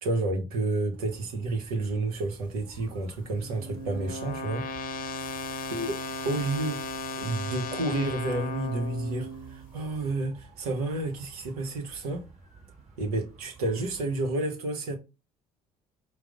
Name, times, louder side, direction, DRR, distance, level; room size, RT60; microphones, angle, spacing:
voice 1, 0.0-4.7 5.7-6.0 6.2-6.8 7.2-12.2 13.0-15.0, right 2 dB, 85° right, 0.9 m, -30 dB
sound 1, 0.9-14.3, right 4 dB, 35° right, 1.7 m, -53 dB
sound 2, 2.7-9.9, left 2 dB, 50° left, 0.7 m, -36 dB
4.6 x 2.0 x 3.8 m
hypercardioid pair, 55°, 19 cm